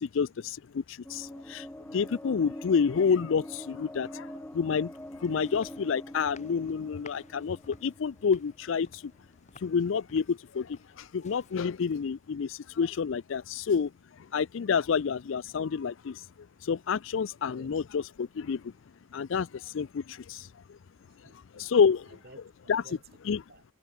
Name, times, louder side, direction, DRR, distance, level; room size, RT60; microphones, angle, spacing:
voice 1, 0.0-1.7 1.9-4.9 5.2-9.1 9.6-13.9 14.3-16.2 16.6-18.7 19.1-20.5 21.6-22.1 22.7-22.8 23.3-23.4, left 6 dB, 65° left, 0.4 m, -29 dB
sound 1, 1.0-9.2, left 1 dB, 10° left, 0.6 m, -45 dB
sound 2, 4.5-12.3, left 3 dB, 35° left, 6.4 m, -57 dB
voice 2, 17.5-17.8 21.0-21.7 22.0-23.6, right 2 dB, 45° right, 4.6 m, -55 dB
head